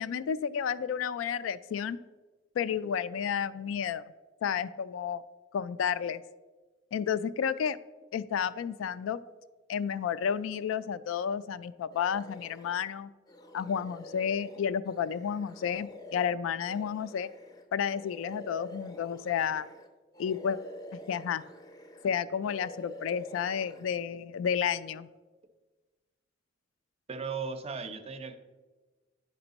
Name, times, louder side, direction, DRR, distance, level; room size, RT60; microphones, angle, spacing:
voice 1, 0.0-2.0 2.6-4.1 4.4-5.2 5.5-6.2 6.9-7.8 8.1-9.2 9.7-13.1 13.5-17.3 17.7-19.7 20.2-20.6 20.9-21.4 22.0-25.1, left 7 dB, 85° left, 15 dB, 0.3 m, -31 dB
sound 1, 11.9-12.9 13.3-19.9 20.1-22.1 22.4-23.8, left 1 dB, 20° left, 0.5 m, -48 dB
voice 2, 27.1-28.3, right 5 dB, 30° right, 10 dB, 0.5 m, -36 dB
10.5 x 4.3 x 4.0 m, 1.3 s
head